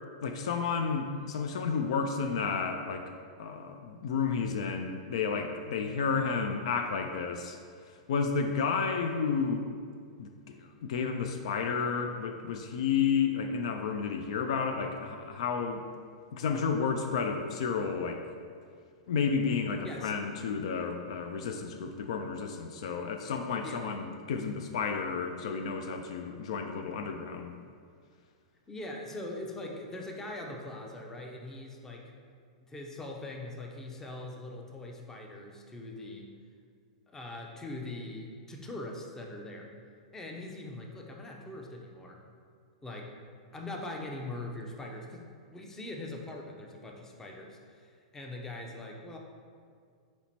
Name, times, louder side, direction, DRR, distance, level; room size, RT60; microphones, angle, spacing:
voice 1, 0.2-3.1 3.4-7.6 8.1-9.7 10.2-15.8 16.3-18.2 19.1-27.5, left 5 dB, 70° left, 5 dB, 0.3 m, -31 dB
voice 2, 28.7-32.1 32.6-36.3 37.1-39.7 40.1-42.2 42.8-43.1 43.5-49.2, left 2 dB, 15° left, 0 dB, 0.6 m, -42 dB
4.3 x 2.9 x 4.1 m, 2.1 s
hypercardioid pair, 110°, 3 cm